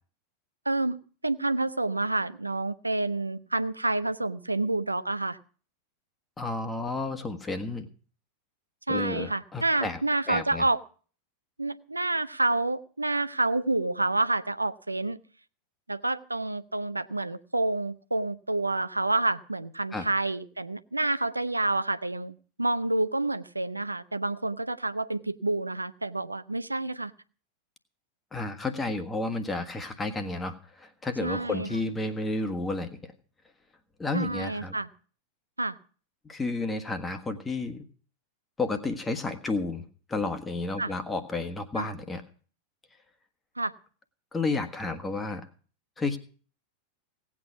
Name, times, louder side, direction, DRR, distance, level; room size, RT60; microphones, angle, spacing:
voice 1, 0.7-1.0 1.2-5.4 8.9-10.8 11.6-15.2 15.9-27.1 31.2-31.8 34.1-34.9 35.6-35.8 40.8-40.9 41.8-41.9 43.6-43.7, right 2 dB, 85° right, 13 dB, 0.7 m, -28 dB
voice 2, 6.4-7.9 8.9-10.0 10.3-10.6 19.9-20.1 28.3-33.1 34.0-34.8 36.2-37.8 38.6-42.2 44.3-45.5 46.0-46.2, left 3 dB, 15° left, 8 dB, 1.5 m, -31 dB
17.5 x 8.7 x 5.9 m, 0.42 s
figure-of-eight pair, 90°, 0 cm